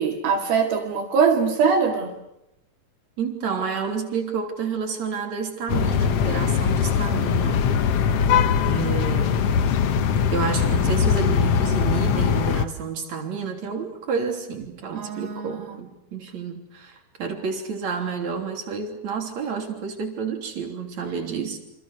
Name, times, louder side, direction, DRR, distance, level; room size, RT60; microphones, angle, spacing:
voice 1, 0.0-2.1 14.9-15.7, right 5 dB, 70° right, -1 dB, 4.2 m, -22 dB
voice 2, 3.2-7.7 8.7-9.5 10.3-21.6, right 6 dB, 45° right, 3 dB, 4.4 m, -30 dB
sound 1, 5.7-12.6, left 7 dB, 85° left, 1.3 m, -21 dB
28.5 x 27.0 x 6.6 m, 0.84 s
omnidirectional pair, 4.5 m